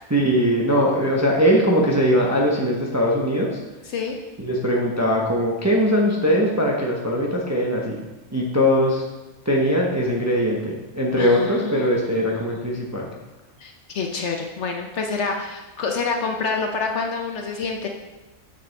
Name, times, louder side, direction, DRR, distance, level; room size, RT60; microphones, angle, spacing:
voice 1, 0.1-3.6 4.4-8.0 8.3-9.0 9.4-13.1, equal, 15° right, -2 dB, 0.6 m, -21 dB
voice 2, 11.2-12.6 13.6-17.9, left 4 dB, 60° left, 3 dB, 0.8 m, -28 dB
6.7 x 6.6 x 3.3 m, 1.1 s
omnidirectional pair, 1.5 m